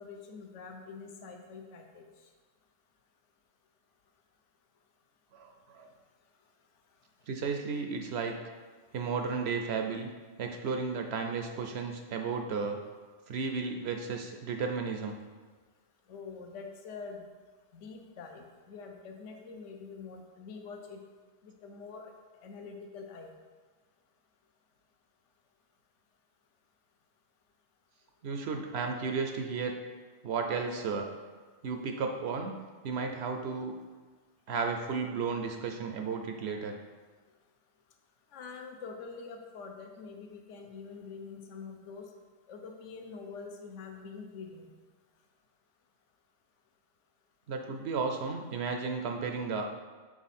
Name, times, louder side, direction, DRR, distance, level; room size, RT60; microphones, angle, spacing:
voice 1, 0.0-2.0 16.1-17.3 17.7-21.0 21.4-22.1 22.4-23.3 38.3-42.1 42.5-44.7, left 5 dB, 70° left, 4 dB, 1.0 m, -45 dB
voice 2, 5.3-5.9 7.3-8.4 8.9-10.1 10.4-12.8 13.3-15.1 28.2-29.7 30.2-31.1 31.6-32.5 32.8-33.7 34.5-36.8 47.5-49.7, right 5 dB, 65° right, 4 dB, 0.7 m, -33 dB
6.1 x 4.0 x 4.1 m, 1.4 s
omnidirectional pair, 1.3 m